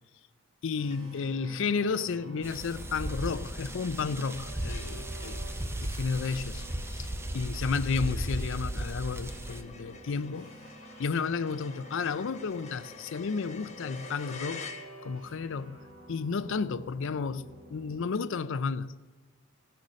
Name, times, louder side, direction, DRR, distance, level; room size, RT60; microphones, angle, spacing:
voice 1, 0.6-5.4 5.8-6.6 6.9-7.1 7.3-10.5 11.0-14.7 15.0-15.8 16.1-19.0, left 5 dB, 70° left, 0.5 m, -32 dB
sound 1, 0.7-18.1, right 2 dB, 70° right, 3.4 m, -50 dB
sound 2, 0.9-1.3 1.7-1.8 2.1-15.3, left 5 dB, 35° left, 1.1 m, -49 dB
sound 3, 2.4-9.6, right 1 dB, 10° right, 0.7 m, -36 dB
16.0 x 6.7 x 6.3 m
head